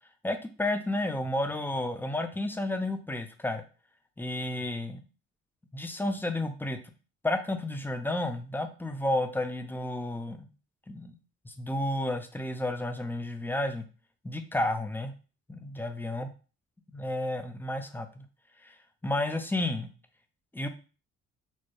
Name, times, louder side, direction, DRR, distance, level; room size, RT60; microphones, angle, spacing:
voice 1, 0.2-3.6 4.2-5.0 5.7-6.8 7.2-10.5 10.9-11.2 11.5-13.8 14.2-15.1 15.5-16.3 16.9-18.3 18.6-18.7 19.0-19.9 20.5-20.7, left 1 dB, 5° left, 7 dB, 0.4 m, -31 dB
4.2 x 2.2 x 3.1 m, 0.35 s
cardioid pair, 90°, 30 cm